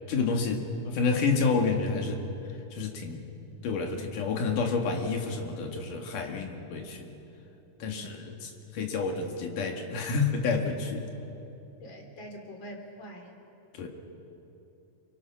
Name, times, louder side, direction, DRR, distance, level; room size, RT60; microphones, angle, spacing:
voice 1, 0.1-2.2 2.7-3.3 3.6-7.1 7.8-11.1 13.7-13.9, left 4 dB, 75° left, 3 dB, 3.5 m, -29 dB
voice 2, 11.8-13.3, equal, 35° left, 2 dB, 3.3 m, -44 dB
27.5 x 23.5 x 6.1 m, 3.0 s
omnidirectional pair, 3.7 m